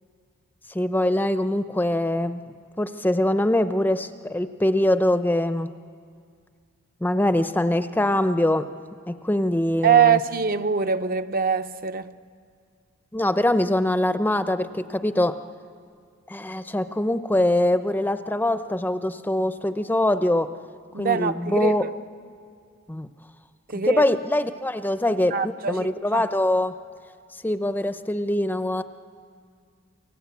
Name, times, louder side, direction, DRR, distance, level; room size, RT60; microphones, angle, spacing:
voice 1, 0.7-2.4 2.8-5.7 7.0-8.7 9.1-10.2 13.1-15.3 16.3-20.5 21.0-21.9 22.9-23.1 23.7-26.7 27.4-28.8, left 1 dB, 10° left, 0.6 m, -23 dB
voice 2, 9.8-12.1 20.9-21.9 23.7-24.0 25.3-25.9 26.1-26.2, right 7 dB, 45° right, 0.7 m, -23 dB
29.0 x 24.5 x 8.3 m
head